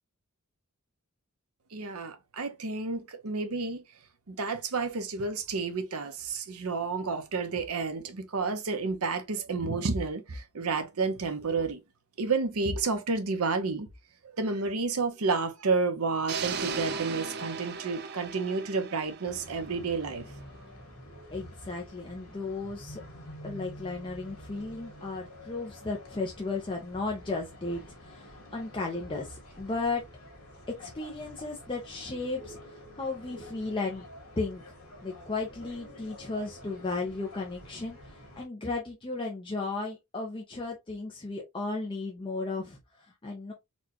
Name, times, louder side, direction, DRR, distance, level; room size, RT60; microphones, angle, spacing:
voice 1, 1.7-3.8 4.3-11.8 12.2-13.9 14.2-20.3, right 4 dB, 80° right, 0.8 m, -30 dB
sound 1, 16.3-20.3, right 5 dB, 50° right, 0.4 m, -37 dB
sound 2, 19.2-38.5, equal, 80° left, 1.6 m, -48 dB
voice 2, 21.3-23.0 23.4-30.0 30.7-34.1 34.4-34.7 35.0-43.5, left 3 dB, 25° left, 0.6 m, -35 dB
4.2 x 2.3 x 2.8 m
head